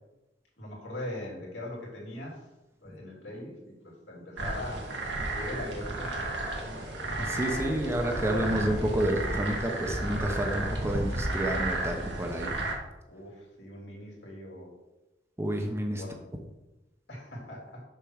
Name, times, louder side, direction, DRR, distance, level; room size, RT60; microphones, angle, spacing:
voice 1, 0.6-2.4 2.8-6.8 13.1-14.7 16.0-16.1 17.1-17.8, left 1 dB, 80° left, -3 dB, 3.1 m, -41 dB
sound 1, 4.4-12.7, right 2 dB, 80° right, 1.7 m, -32 dB
voice 2, 7.2-12.5 15.4-16.0, right 1 dB, 15° right, 3 dB, 0.9 m, -30 dB
6.9 x 4.6 x 6.5 m, 0.99 s
head